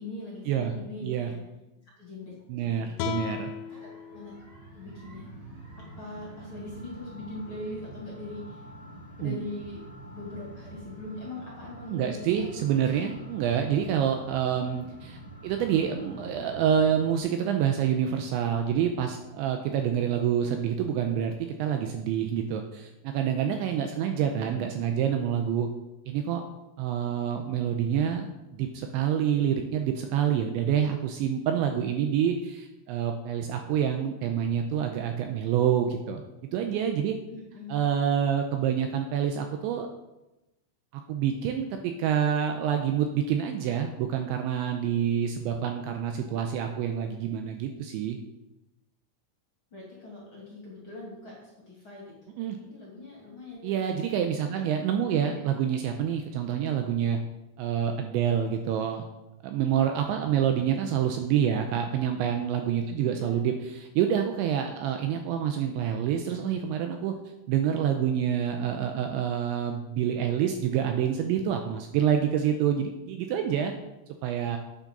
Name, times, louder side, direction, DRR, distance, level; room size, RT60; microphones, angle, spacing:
voice 1, 0.0-1.4 1.8-3.1 3.7-4.3 4.7-5.3 6.0-8.6 9.2-9.8 10.1-13.5 20.4-20.7 24.1-24.5 37.3-37.8 45.5-45.6 49.7-52.1 52.4-53.8 54.5-54.8 55.1-55.4 60.4-60.7 63.0-63.4 65.1-65.2, left 2 dB, 35° left, -5 dB, 2.5 m, -42 dB
voice 2, 2.5-3.5 9.2-9.4 11.9-25.7 26.1-26.4 26.8-37.2 37.7-39.9 40.9-48.2 52.4-52.6 53.6-57.2 57.6-59.0 59.4-67.1 67.5-73.7 74.2-74.6, right 9 dB, 85° right, 5 dB, 2.7 m, -27 dB
sound 1, 3.0-6.2, left 11 dB, 85° left, 3.2 m, -38 dB
sound 2, 3.1-17.2, right 2 dB, 40° right, 1.5 m, -46 dB
9.2 x 7.5 x 6.8 m, 0.97 s
omnidirectional pair, 5.9 m